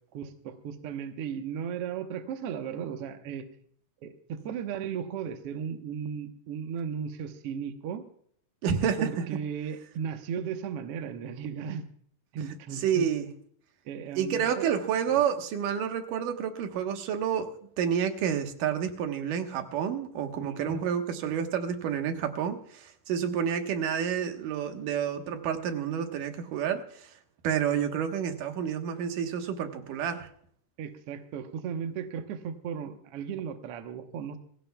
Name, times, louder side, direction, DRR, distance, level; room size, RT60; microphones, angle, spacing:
voice 1, 0.1-3.5 4.0-8.0 9.0-11.8 12.3-13.1 13.9-14.7 15.1-15.2 20.4-20.8 30.8-34.4, right 7 dB, 60° right, 6 dB, 1.7 m, -36 dB
voice 2, 8.6-9.3 12.8-13.3 14.2-17.5 17.8-27.2 27.4-30.3, right 8 dB, 85° right, 6 dB, 2.9 m, -29 dB
22.5 x 15.5 x 2.3 m, 0.62 s
omnidirectional pair, 3.7 m